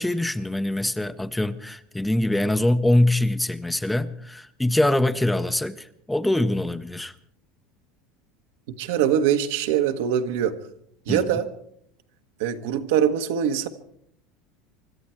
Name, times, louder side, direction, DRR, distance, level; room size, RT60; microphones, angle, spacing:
voice 1, 0.0-7.2 11.1-11.4, left 1 dB, 5° left, 0.5 m, -23 dB
voice 2, 8.8-10.6 11.1-11.5 12.4-13.7, right 9 dB, 75° right, 1.3 m, -23 dB
25.0 x 12.5 x 4.5 m
supercardioid pair, 155°, 0 cm